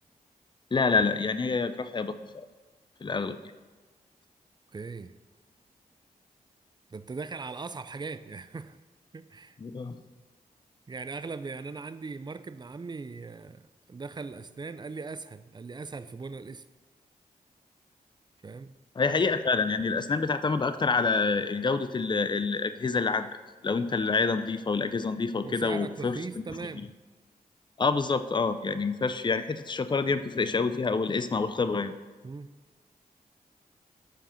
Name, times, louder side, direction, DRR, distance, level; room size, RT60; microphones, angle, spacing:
voice 1, 0.7-2.4 3.0-3.4 9.6-10.0 19.0-23.3 23.6-26.2 27.8-31.9, left 4 dB, 30° left, 12 dB, 0.5 m, -27 dB
voice 2, 4.7-5.1 6.9-8.8 9.1-9.6 10.9-13.6 13.9-16.6 18.4-18.7 25.4-26.9 32.2-32.5, right 4 dB, 25° right, 13 dB, 0.4 m, -39 dB
5.6 x 4.9 x 5.7 m, 1.3 s
cardioid pair, 40°, 16 cm